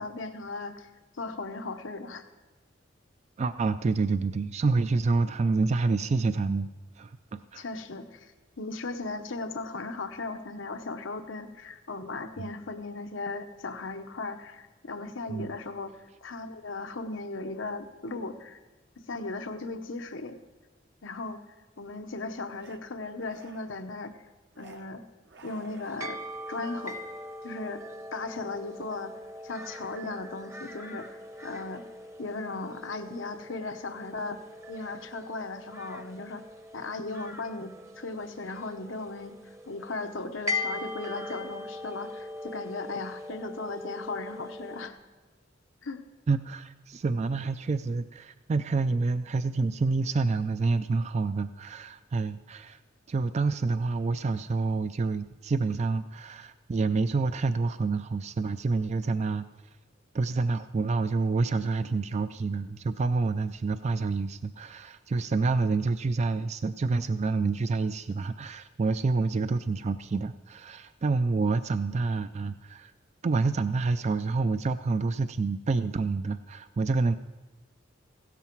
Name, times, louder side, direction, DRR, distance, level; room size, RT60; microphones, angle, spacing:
voice 1, 0.0-2.2 7.5-8.3 8.6-18.6 19.1-20.4 21.0-21.4 21.8-24.2 24.6-25.0 25.4-26.2 26.5-27.0 27.4-27.8 28.1-31.8 32.2-34.4 34.7-36.4 36.7-45.0 45.8-46.0, left 3 dB, 90° left, 8 dB, 1.0 m, -37 dB
voice 2, 3.4-6.7 7.0-7.6 12.4-12.5 15.3-15.5 46.3-52.8 53.1-59.5 60.1-72.9 73.2-77.2, right 3 dB, 35° right, 11 dB, 0.4 m, -28 dB
sound 1, 22.5-22.8 23.1-23.9 24.5-24.9 25.2-26.3 26.8-27.1, right 3 dB, 65° right, 1.0 m, -54 dB
sound 2, 25.4-44.9, left 2 dB, 15° right, 0.8 m, -40 dB
16.0 x 13.0 x 4.6 m, 1.2 s
head